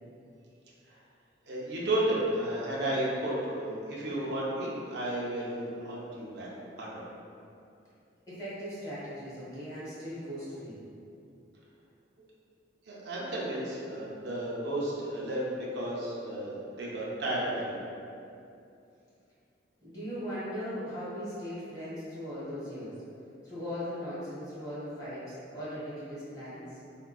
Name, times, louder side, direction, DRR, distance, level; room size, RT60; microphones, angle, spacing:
voice 1, 1.5-6.5 6.8-7.0 12.9-17.8, right 1 dB, 60° right, -5 dB, 0.5 m, -33 dB
voice 2, 8.3-10.8 19.8-22.9 23.4-26.8, equal, 20° left, -12 dB, 1.1 m, -39 dB
3.4 x 2.2 x 2.3 m, 2.6 s
head